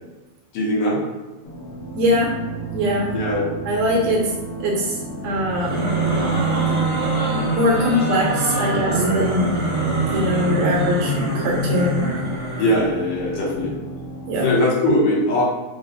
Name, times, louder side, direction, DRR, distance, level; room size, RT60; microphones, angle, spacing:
voice 1, 0.5-1.0 3.1-3.5 10.6-10.7 12.6-13.7 14.4-15.4, left 1 dB, 75° left, -4 dB, 2.1 m, -20 dB
sound 1, 1.4-14.5, right 1 dB, 60° left, 1.5 m, -32 dB
voice 2, 2.0-2.3 2.7-3.1 3.7-4.3 4.6-5.0 5.2-5.9 7.6-9.5 10.1-12.1 14.3-14.5, equal, 75° right, -2 dB, 1.8 m, -21 dB
sound 2, 5.5-12.8, right 2 dB, 60° right, 0.4 m, -23 dB
5.4 x 2.0 x 2.6 m, 1.2 s
omnidirectional pair, 3.4 m